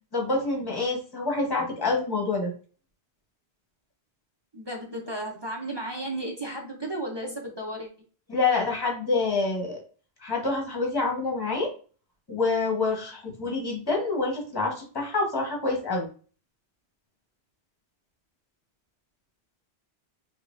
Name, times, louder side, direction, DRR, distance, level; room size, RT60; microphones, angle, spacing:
voice 1, 0.1-2.5 8.3-9.8 10.2-11.7 12.3-16.1, left 3 dB, 20° left, 0 dB, 1.2 m, -27 dB
voice 2, 4.5-7.9, right 1 dB, 30° right, 0 dB, 0.6 m, -34 dB
5.2 x 2.4 x 2.5 m, 0.38 s
omnidirectional pair, 1.1 m